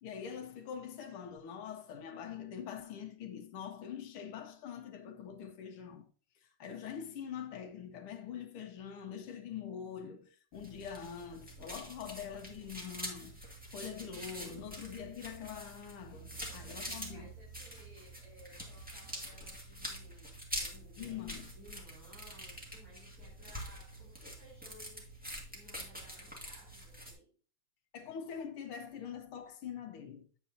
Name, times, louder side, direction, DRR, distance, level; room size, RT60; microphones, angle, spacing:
voice 1, 0.0-6.1 6.4-13.4 13.7-17.3 21.0-21.5 27.9-30.3, left 8 dB, 80° left, 1.8 m, -44 dB
sound 1, 10.5-27.1, equal, 5° right, 1.6 m, -46 dB
voice 2, 16.4-25.1 25.5-27.3, equal, 85° right, 5.0 m, -59 dB
9.0 x 8.3 x 2.7 m
omnidirectional pair, 2.4 m